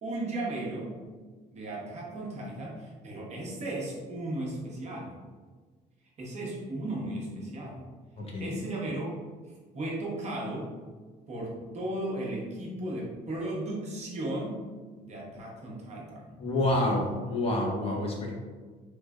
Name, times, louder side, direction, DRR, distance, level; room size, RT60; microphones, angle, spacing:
voice 1, 0.0-1.0 1.5-5.2 6.2-7.9 8.4-9.1 9.7-10.7 11.3-14.6 15.0-16.3, right 1 dB, 40° right, -4 dB, 1.0 m, -35 dB
voice 2, 8.2-8.6 16.4-18.3, left 1 dB, 35° left, -1 dB, 0.7 m, -28 dB
3.2 x 3.2 x 2.4 m, 1.4 s
cardioid pair, 110°, 17 cm